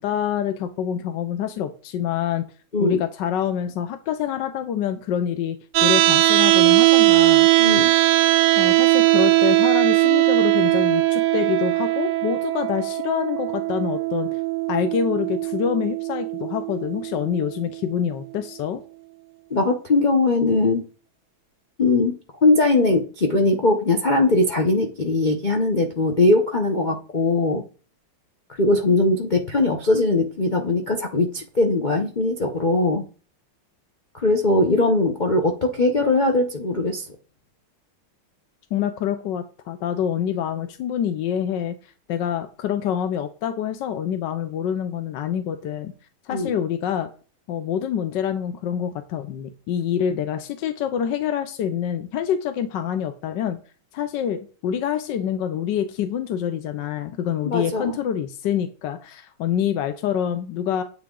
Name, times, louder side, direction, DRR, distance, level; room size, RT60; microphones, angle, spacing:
voice 1, 0.0-2.4 2.8-5.6 5.8-7.5 8.6-14.3 14.7-18.8 38.7-45.9 46.2-47.1 47.5-53.6 53.9-60.8, left 9 dB, 65° left, 9 dB, 1.2 m, -26 dB
sound 1, 5.7-17.8, right 17 dB, 85° right, 0.9 m, -19 dB
voice 2, 7.6-7.9 19.5-20.8 21.8-27.6 28.6-33.0 34.1-37.1 46.3-46.5 57.4-58.0, left 2 dB, 85° left, 3 dB, 0.4 m, -20 dB
9.5 x 8.2 x 3.8 m, 0.39 s
omnidirectional pair, 2.3 m